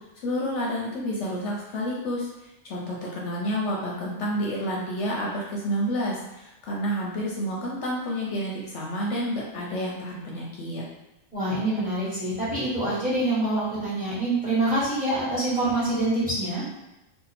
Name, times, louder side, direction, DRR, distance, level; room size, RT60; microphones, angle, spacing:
voice 1, 0.2-10.8, equal, 65° left, -3 dB, 0.9 m, -29 dB
voice 2, 11.3-16.6, right 2 dB, 5° right, -8 dB, 1.0 m, -25 dB
2.7 x 2.3 x 4.1 m, 1.0 s
omnidirectional pair, 1.4 m